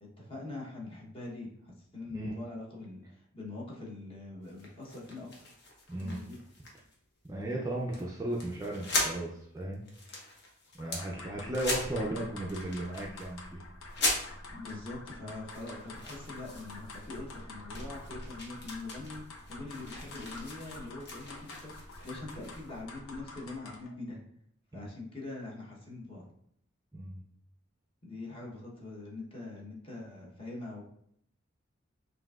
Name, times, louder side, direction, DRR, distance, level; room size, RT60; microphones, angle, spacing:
voice 1, 0.0-5.5 6.0-6.4 14.5-24.2 24.7-26.2 28.0-30.8, left 2 dB, 25° left, -3 dB, 0.9 m, -43 dB
sound 1, 4.4-6.9 7.3-7.5 7.9-8.0 8.3-9.2 9.6-11.0 11.5-12.1 12.4-13.3 13.9-14.7 15.3-17.4 17.7-22.8, left 2 dB, 55° left, 0.9 m, -39 dB
voice 2, 5.9-6.2 7.3-9.8 10.8-13.6 24.7-24.9 26.9-27.2, right 1 dB, 15° right, -3 dB, 0.4 m, -35 dB
sound 2, 10.8-24.0, left 2 dB, 85° left, 0.7 m, -47 dB
5.7 x 2.6 x 2.4 m, 0.70 s
head